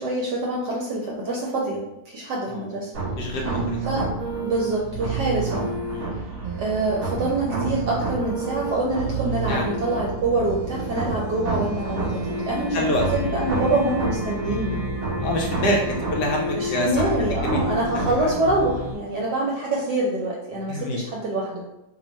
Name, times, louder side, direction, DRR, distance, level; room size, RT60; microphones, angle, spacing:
voice 1, 0.0-1.8 2.1-2.9 3.9-4.1 4.4-5.7 6.6-14.8 16.6-21.6, right 2 dB, 70° right, -3 dB, 1.1 m, -25 dB
sound 1, 2.9-18.9, right 3 dB, 50° right, 1.3 m, -28 dB
voice 2, 3.2-3.8 5.9-6.2 9.5-9.7 12.7-13.1 15.2-17.1 17.4-17.6 17.9-18.3 20.5-21.1, left 1 dB, 70° left, 0 dB, 1.1 m, -26 dB
3.1 x 2.2 x 3.9 m, 0.91 s
omnidirectional pair, 2.0 m